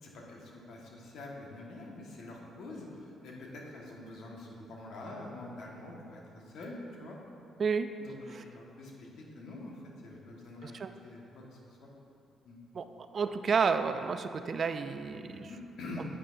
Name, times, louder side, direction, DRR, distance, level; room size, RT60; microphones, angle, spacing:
voice 1, 0.0-7.2 8.0-11.9 12.4-12.6 15.2-16.1, left 2 dB, 70° left, -2 dB, 1.5 m, -46 dB
voice 2, 7.6-7.9 8.3-8.4 10.6-10.9 12.7-12.9 13.1-15.5, right 5 dB, 45° right, 9 dB, 0.4 m, -31 dB
9.5 x 9.0 x 2.6 m, 2.7 s
cardioid pair, 90°, 0 cm